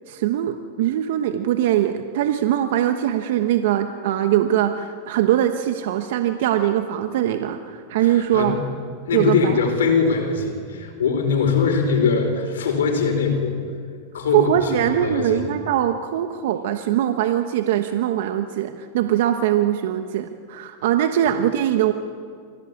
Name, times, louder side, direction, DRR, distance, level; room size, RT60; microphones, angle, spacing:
voice 1, 0.1-8.6 9.1-9.6 14.3-21.9, right 11 dB, 70° right, 7 dB, 1.2 m, -21 dB
voice 2, 8.0-8.6 9.1-13.6 14.1-14.5 14.8-15.4, left 5 dB, 85° left, 4 dB, 4.7 m, -21 dB
24.5 x 16.5 x 8.5 m, 2.1 s
hypercardioid pair, 115°, 0 cm